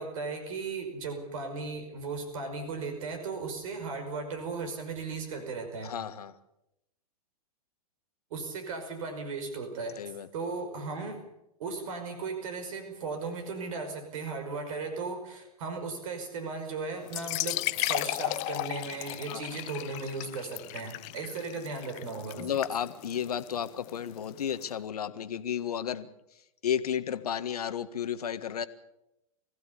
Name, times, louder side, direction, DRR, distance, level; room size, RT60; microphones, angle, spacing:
voice 1, 0.0-5.9 8.3-10.0 10.3-11.2 11.6-22.5, right 4 dB, 60° right, 6 dB, 5.5 m, -36 dB
voice 2, 5.8-6.4 10.0-10.3 19.3-19.4 22.3-28.7, left 9 dB, 75° left, 10 dB, 1.7 m, -33 dB
sound 1, 17.0-24.6, left 22 dB, 35° left, 0.7 m, -35 dB
24.0 x 16.0 x 8.5 m, 0.87 s
hypercardioid pair, 115°, 20 cm